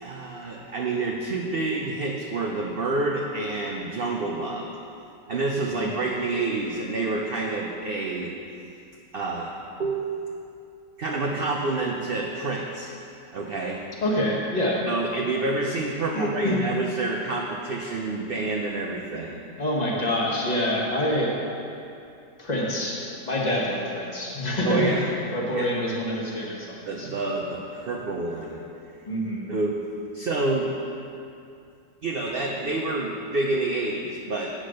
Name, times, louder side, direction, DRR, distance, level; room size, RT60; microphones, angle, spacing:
voice 1, 0.0-4.7 5.3-8.3 9.1-9.5 9.8-10.5 11.0-12.9 13.3-13.8 14.9-19.4 24.7-25.0 25.6-25.7 26.9-28.6 29.5-29.8 30.1-30.7 32.0-34.5, right 3 dB, 55° right, -1 dB, 0.6 m, -28 dB
voice 2, 14.0-14.8 16.1-16.6 19.6-21.3 22.4-23.0 23.2-24.9 25.3-27.1 29.1-29.5, left 1 dB, 25° left, -3 dB, 1.4 m, -26 dB
8.4 x 6.3 x 6.4 m, 2.6 s
omnidirectional pair, 1.8 m